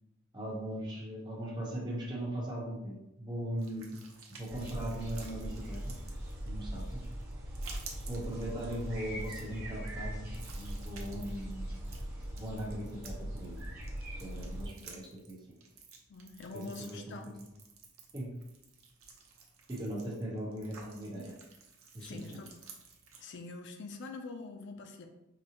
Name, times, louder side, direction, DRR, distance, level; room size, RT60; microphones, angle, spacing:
voice 1, 0.3-3.9 4.3-5.9 6.4-7.0 8.1-11.7 12.4-13.6 14.2-15.6 16.5-16.6 16.9-17.4 18.1-18.3 19.7-21.3 21.9-22.4, right 1 dB, 20° right, -4 dB, 0.9 m, -39 dB
sound 1, 3.6-23.2, right 5 dB, 75° right, 0.7 m, -54 dB
sound 2, 4.5-14.7, right 1 dB, 45° right, 1.2 m, -41 dB
voice 2, 14.3-14.6 16.1-17.3 22.0-22.5 23.2-25.1, left 3 dB, 55° left, 5 dB, 0.4 m, -45 dB
4.9 x 2.0 x 2.9 m, 0.88 s
head